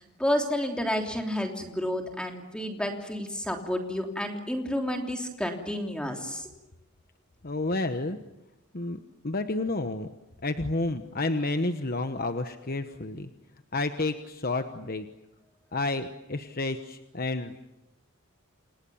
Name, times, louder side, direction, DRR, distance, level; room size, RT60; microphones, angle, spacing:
voice 1, 0.0-6.5, left 1 dB, 5° left, 3 dB, 3.2 m, -30 dB
voice 2, 7.4-8.2 8.7-9.0 9.2-10.1 10.4-13.3 13.7-15.1 15.7-17.7, left 2 dB, 45° left, 8 dB, 1.1 m, -30 dB
29.0 x 28.0 x 7.2 m, 0.97 s
head